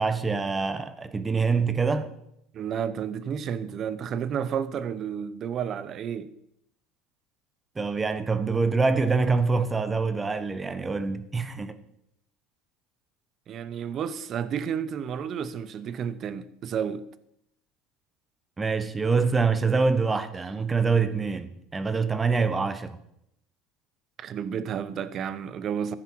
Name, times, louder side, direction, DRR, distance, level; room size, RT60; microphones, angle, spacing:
voice 1, 0.0-2.1 7.7-11.7 18.6-23.0, right 4 dB, 15° right, 1.1 m, -25 dB
voice 2, 2.5-6.3 13.5-17.1 24.2-25.9, right 8 dB, 40° right, 0.9 m, -31 dB
15.0 x 10.0 x 4.7 m
supercardioid pair, 120°, 0 cm